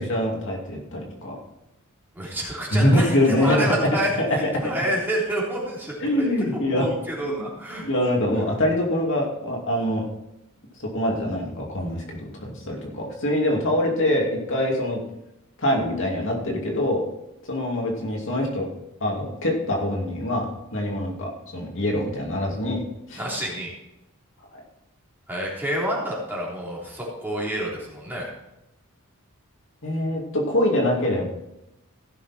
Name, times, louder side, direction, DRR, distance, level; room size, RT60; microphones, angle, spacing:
voice 1, 0.0-1.3 2.7-3.8 4.2-4.7 6.0-6.9 7.2-7.5 7.8-10.1 10.8-15.0 15.6-17.0 17.5-18.7 19.0-22.8 23.1-23.2 24.5-24.6 29.8-31.3, left 1 dB, 60° left, -1 dB, 2.6 m, -24 dB
voice 2, 2.1-6.3 6.7-7.8 23.2-23.7 25.3-28.3, right 1 dB, 10° right, -5 dB, 3.4 m, -28 dB
15.5 x 6.5 x 4.3 m, 0.88 s
head